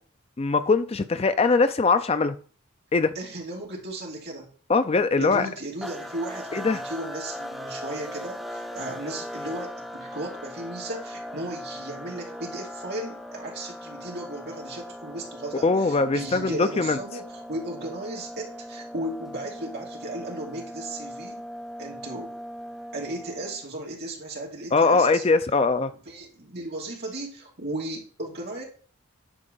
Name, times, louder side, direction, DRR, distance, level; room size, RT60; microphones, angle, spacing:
voice 1, 0.4-2.3 2.9-3.1 4.7-5.5 6.5-6.8 15.6-17.0 24.7-25.9, left 4 dB, 25° left, 11 dB, 0.4 m, -21 dB
voice 2, 3.1-4.5 5.2-21.4 21.8-22.4 22.9-25.2 26.1-28.6, right 1 dB, 45° right, -2 dB, 2.7 m, -35 dB
sound 1, 5.8-23.7, left 1 dB, ahead, 0.9 m, -39 dB
10.0 x 4.9 x 5.4 m, 0.43 s
head